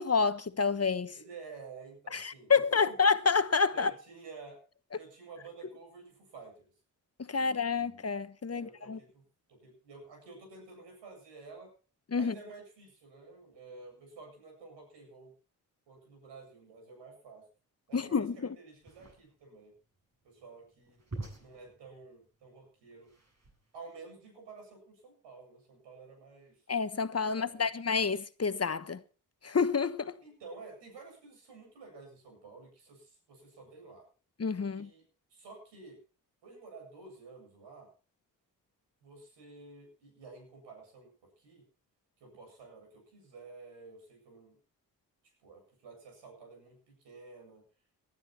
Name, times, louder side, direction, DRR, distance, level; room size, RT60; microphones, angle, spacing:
voice 1, 0.0-1.1 2.1-3.9 7.2-9.0 12.1-12.3 17.9-18.5 26.7-29.0 29.4-30.1 34.4-34.9, left 5 dB, 35° left, 1.3 m, -29 dB
voice 2, 1.1-3.0 3.7-4.6 4.9-6.7 7.3-8.0 8.4-11.7 12.1-15.3 15.9-17.5 17.9-19.7 20.2-21.0 21.4-23.1 23.7-26.6 27.2-27.7 30.2-34.1 34.6-35.0 35.3-36.0 36.4-37.9 39.0-41.1 41.4-41.6 42.2-44.6 45.4-47.6, right 4 dB, 85° right, 7.9 m, -51 dB
sound 1, 18.8-23.9, right 2 dB, 40° right, 6.6 m, -47 dB
19.5 x 12.0 x 4.4 m
supercardioid pair, 45°, 41 cm